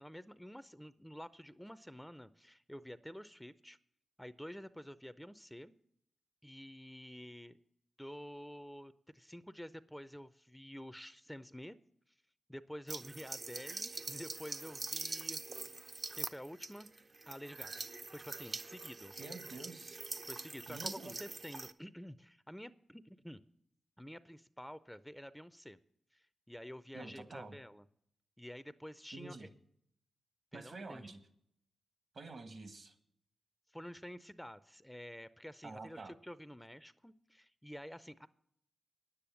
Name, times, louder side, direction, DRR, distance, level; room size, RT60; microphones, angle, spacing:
voice 1, 0.0-3.8 4.2-5.7 6.4-7.6 8.0-11.8 12.5-16.9 17.3-17.8 18.1-19.1 20.3-23.4 24.0-25.8 26.1-27.9 28.4-29.5 30.5-31.1 33.7-38.3, equal, 5° left, 14 dB, 0.5 m, -49 dB
sound 1, 12.9-21.7, right 3 dB, 50° right, 0.6 m, -44 dB
voice 2, 19.2-20.0 20.7-21.2 26.9-27.6 29.1-29.5 30.5-31.2 32.1-32.9 35.6-36.1, right 3 dB, 65° right, 9 dB, 1.5 m, -48 dB
9.9 x 8.6 x 7.0 m, 0.72 s
supercardioid pair, 45°, 0 cm